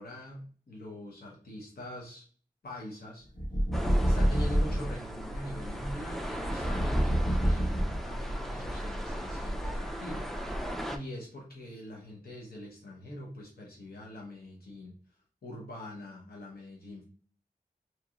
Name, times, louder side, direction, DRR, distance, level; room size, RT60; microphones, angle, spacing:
voice 1, 0.0-2.3 2.6-3.3 4.0-14.9 15.4-17.0, left 1 dB, 85° left, -3 dB, 1.0 m, -43 dB
sound 1, 3.3-4.9 6.4-8.3, equal, 30° left, 1.3 m, -27 dB
sound 2, 3.7-11.0, equal, ahead, 0.4 m, -36 dB
3.1 x 2.8 x 2.4 m, 0.42 s
wide cardioid pair, 75°, 15 cm